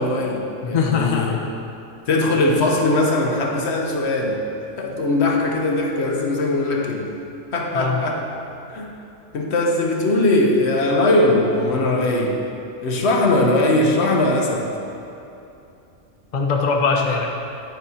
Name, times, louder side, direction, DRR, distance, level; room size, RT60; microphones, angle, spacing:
voice 1, 0.0-1.4 2.1-4.4 4.8-7.1 7.5-8.2 8.7-8.9 9.3-12.4 12.8-14.7, left 2 dB, 65° left, 0 dB, 1.1 m, -20 dB
voice 2, 0.6-1.4 7.7-8.0 16.3-17.3, left 5 dB, 45° left, 0 dB, 0.7 m, -21 dB
10.0 x 5.2 x 4.2 m, 2.7 s
omnidirectional pair, 1.3 m